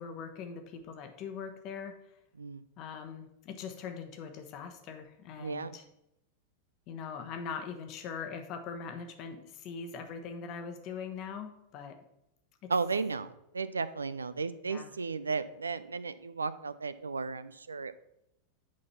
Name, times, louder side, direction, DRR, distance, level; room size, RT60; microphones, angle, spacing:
voice 1, 0.0-2.0 2.8-5.8 6.9-12.0 12.6-12.7 14.7-14.9, left 6 dB, 40° left, 6 dB, 1.1 m, -41 dB
voice 2, 5.4-5.7 12.7-17.9, right 4 dB, 75° right, 15 dB, 0.4 m, -34 dB
8.5 x 4.0 x 5.7 m, 0.83 s
figure-of-eight pair, 90°, 0 cm